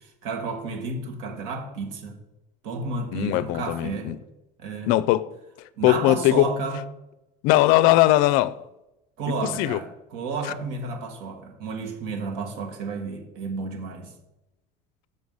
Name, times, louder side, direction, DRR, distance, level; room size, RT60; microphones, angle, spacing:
voice 1, 0.0-2.2 2.6-4.2 4.6-5.0 5.8-6.8 9.2-14.1, right 4 dB, 70° right, 1.8 m, -32 dB
voice 2, 3.1-4.2 4.9-5.2 5.8-6.5 7.4-8.6 9.6-9.8, left 16 dB, 55° left, 0.4 m, -19 dB
6.6 x 6.4 x 5.4 m
cardioid pair, 180°, 17 cm